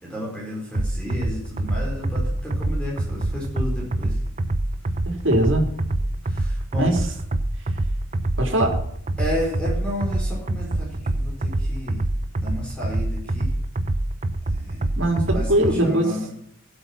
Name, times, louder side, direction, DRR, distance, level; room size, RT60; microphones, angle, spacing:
voice 1, 0.0-4.2 6.2-6.9 9.2-12.0 12.4-13.5 14.5-14.8 15.1-16.3, left 1 dB, 5° left, -4 dB, 4.6 m, -32 dB
sound 1, 0.7-15.8, right 1 dB, 35° right, 0.7 m, -25 dB
voice 2, 5.1-5.6 6.8-7.1 8.4-8.8 15.0-16.2, right 1 dB, 60° right, 2 dB, 3.7 m, -21 dB
15.5 x 8.1 x 6.0 m, 0.67 s
head